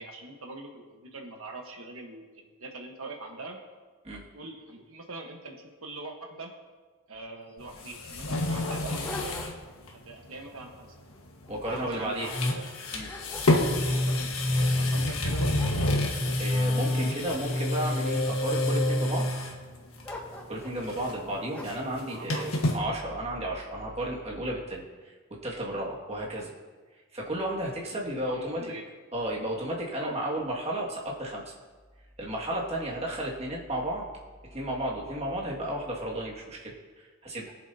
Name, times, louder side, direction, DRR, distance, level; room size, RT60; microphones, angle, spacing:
voice 1, 0.0-3.6 4.3-6.5 7.1-9.3 10.0-10.9 11.7-12.6 13.6-15.6 22.1-22.6 28.2-28.8 30.0-30.2, right 2 dB, 80° right, 1 dB, 1.3 m, -42 dB
Dog, 7.1-7.2 7.5-7.6 8.2-9.8 10.2-10.5 11.1-12.6 13.0-14.0 14.6-14.7 15.1-17.5 18.1-18.7 20.0-20.8 21.5-21.9, left 1 dB, 10° left, 1.2 m, -44 dB
sound 1, 7.6-9.6 9.9-10.0 11.7-11.9 12.2-19.6 20.0-20.4 20.7-22.8, left 1 dB, 90° left, 1.5 m, -28 dB
voice 2, 11.5-12.4 12.9-13.1 16.4-19.3 20.5-25.2 25.4-26.5 26.9-28.7 29.1-31.5 32.2-34.1 34.5-37.5, right 1 dB, 30° right, -4 dB, 2.0 m, -33 dB
22.0 x 7.3 x 2.8 m, 1.4 s
head